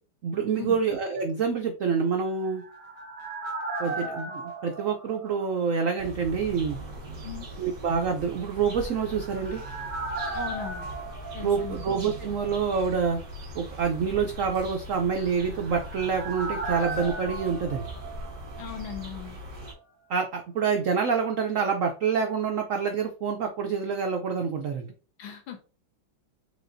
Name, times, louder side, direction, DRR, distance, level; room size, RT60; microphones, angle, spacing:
voice 1, 0.2-2.6 3.8-6.8 7.6-9.6 11.4-13.2 13.5-17.9 20.1-24.9, right 6 dB, 85° right, 4 dB, 0.7 m, -27 dB
sound 1, 2.2-6.0 6.2-6.3 8.7-12.5 12.7-12.8 15.1-18.9 19.2-19.3, right 2 dB, 30° right, 1.4 m, -37 dB
sound 2, 6.0-19.7, right 1 dB, 55° right, 2.0 m, -40 dB
voice 2, 10.3-10.9 11.3-11.9 18.6-19.4 25.2-25.6, left 9 dB, 85° left, 5 dB, 1.7 m, -38 dB
4.9 x 3.8 x 2.6 m, 0.36 s
omnidirectional pair, 2.1 m